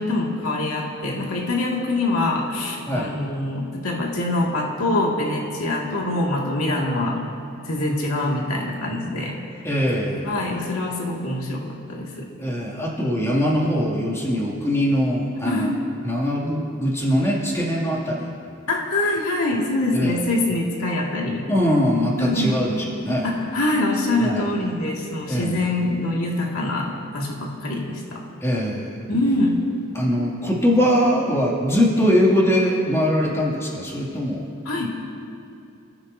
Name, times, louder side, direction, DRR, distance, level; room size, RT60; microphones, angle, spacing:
voice 1, 0.0-7.2 7.6-9.4 10.2-12.3 15.4-15.8 18.7-21.5 22.2-22.6 23.2-28.2 29.1-29.6 34.7-34.9, left 2 dB, 90° left, -2 dB, 2.4 m, -24 dB
voice 2, 9.6-10.3 12.4-15.7 16.0-18.3 19.9-20.2 21.5-23.3 24.2-24.4 25.3-25.6 28.4-28.9 29.9-34.4 34.8-34.9, equal, 15° left, -4 dB, 2.7 m, -22 dB
27.5 x 14.5 x 2.8 m, 2.5 s
head